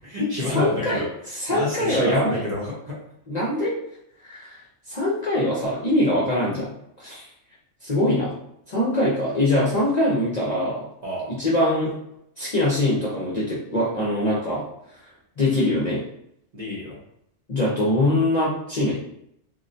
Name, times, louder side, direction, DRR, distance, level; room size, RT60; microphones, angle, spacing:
voice 1, 0.0-1.1 1.5-3.0 11.0-11.3 16.5-17.0, left 2 dB, 40° right, -6 dB, 0.7 m, -28 dB
voice 2, 0.5-2.4 3.3-3.8 4.2-4.6 4.9-6.7 7.0-7.3 7.8-8.4 8.7-10.9 11.3-11.9 12.4-14.6 15.4-16.0 17.5-18.9, left 1 dB, 45° left, -6 dB, 0.5 m, -23 dB
3.6 x 2.1 x 2.6 m, 0.76 s
omnidirectional pair, 1.3 m